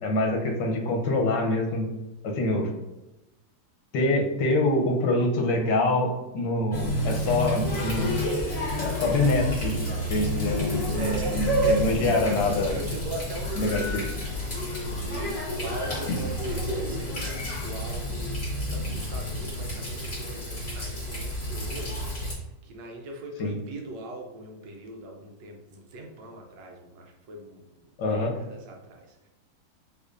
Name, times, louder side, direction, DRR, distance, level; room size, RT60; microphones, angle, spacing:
voice 1, 0.0-1.9 2.2-2.7 3.9-8.1 8.8-9.8 10.1-12.8 13.6-14.0 23.4-23.5 28.0-28.3, left 2 dB, 80° left, 2 dB, 1.4 m, -25 dB
Water tap faucet, 6.7-22.3, equal, 35° left, 1.8 m, -30 dB
sound 1, 7.6-19.7, left 2 dB, 60° left, 1.1 m, -39 dB
voice 2, 11.0-11.8 12.6-14.1 14.4-22.0 22.6-27.6 28.0-29.3, right 1 dB, 80° right, 1 dB, 1.5 m, -40 dB
5.6 x 3.3 x 2.5 m, 0.98 s
omnidirectional pair, 1.9 m